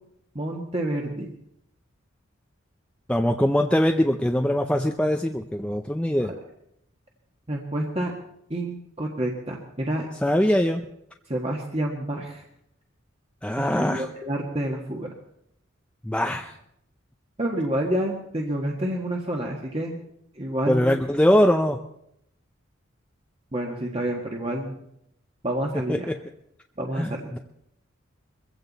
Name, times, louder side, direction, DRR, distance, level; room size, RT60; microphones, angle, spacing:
voice 1, 0.3-1.3 6.3-6.4 7.5-8.1 8.5-10.1 11.3-12.4 13.6-15.1 17.4-20.0 20.3-21.0 23.5-24.8 25.4-26.1 26.8-27.3, right 1 dB, 30° right, 0 dB, 1.5 m, -28 dB
voice 2, 3.1-6.3 10.2-10.9 13.4-14.1 16.0-16.6 20.7-21.8 25.9-26.2 27.0-27.4, equal, 5° left, 4 dB, 0.6 m, -22 dB
22.5 x 16.0 x 4.1 m, 0.76 s
head